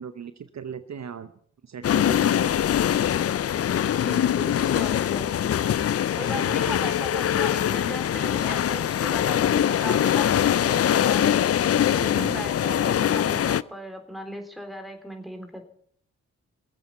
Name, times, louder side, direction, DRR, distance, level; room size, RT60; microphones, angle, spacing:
voice 1, 0.0-1.3 1.6-2.5 6.3-6.7 12.1-12.5, right 7 dB, 55° right, 11 dB, 0.9 m, -38 dB
sound 1, 1.8-13.6, left 10 dB, 50° left, 0.4 m, -23 dB
voice 2, 4.0-5.3 6.1-11.4 11.9-15.6, equal, ahead, 5 dB, 3.4 m, -37 dB
21.0 x 8.1 x 5.7 m, 0.64 s
supercardioid pair, 45°, 32 cm